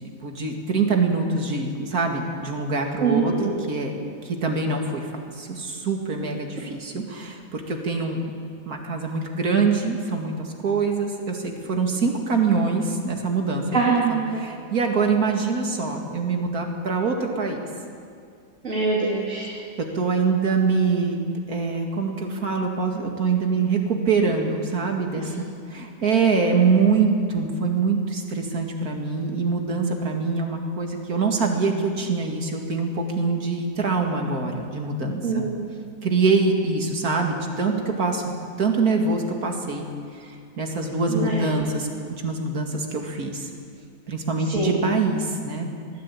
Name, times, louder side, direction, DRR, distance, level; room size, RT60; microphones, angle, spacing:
voice 1, 0.0-3.9 4.2-8.2 8.7-13.8 14.1-17.6 19.9-21.2 21.5-25.4 25.7-35.5 36.0-38.2 38.6-39.9 40.6-41.9 42.2-43.5 44.1-45.7, right 4 dB, 65° right, 2 dB, 2.7 m, -24 dB
voice 2, 3.0-3.5 13.7-14.4 18.6-19.5 25.2-25.3 35.2-35.9 41.1-41.5 44.5-44.8, right 4 dB, 50° right, -4 dB, 3.1 m, -24 dB
20.5 x 14.5 x 8.6 m, 2.3 s
omnidirectional pair, 1.7 m